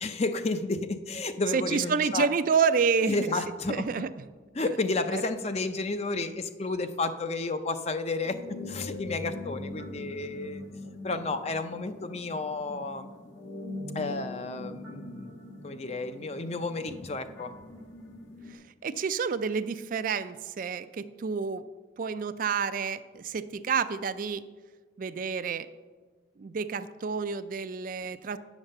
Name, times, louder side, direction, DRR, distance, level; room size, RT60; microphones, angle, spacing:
voice 1, 0.0-2.3 3.0-4.1 4.5-10.6 11.0-13.1 13.9-15.3 15.6-17.6, left 3 dB, 35° left, 10 dB, 0.5 m, -32 dB
voice 2, 1.5-3.3 3.7-4.1 5.1-5.2 18.5-21.6 22.0-24.4 25.0-25.7 26.4-28.4, right 5 dB, 45° right, 13 dB, 0.3 m, -29 dB
sound 1, 8.2-18.5, left 2 dB, 75° left, 1.6 m, -42 dB
9.0 x 7.2 x 6.5 m, 1.4 s
head